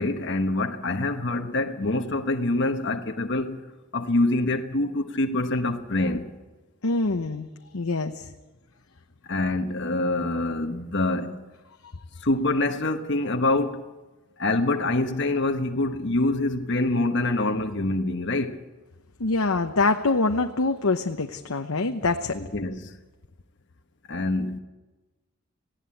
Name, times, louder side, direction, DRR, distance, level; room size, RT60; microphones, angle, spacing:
voice 1, 0.0-3.6 3.9-6.3 9.2-11.4 12.2-13.8 14.4-18.6 22.3-23.0 24.1-24.6, left 2 dB, 55° left, 1.2 m, -25 dB
voice 2, 6.8-7.5 7.7-8.3 19.2-22.4, left 3 dB, 75° left, 0.9 m, -25 dB
19.0 x 16.5 x 8.5 m
head